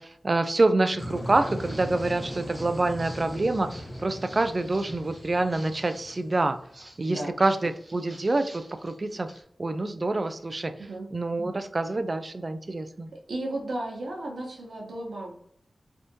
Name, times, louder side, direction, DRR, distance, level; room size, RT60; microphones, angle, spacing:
voice 1, 0.0-3.7 4.0-6.6 7.0-9.3 9.6-10.7 11.1-13.1, right 2 dB, 40° right, 9 dB, 0.3 m, -26 dB
sound 1, 1.0-6.9, equal, 40° left, 0.6 m, -38 dB
Walk footsteps, 1.1-9.4, right 1 dB, 20° right, 0.8 m, -50 dB
voice 2, 13.3-15.3, right 1 dB, 85° right, -2 dB, 0.9 m, -34 dB
3.5 x 2.6 x 2.7 m, 0.63 s
wide cardioid pair, 85°, 0 cm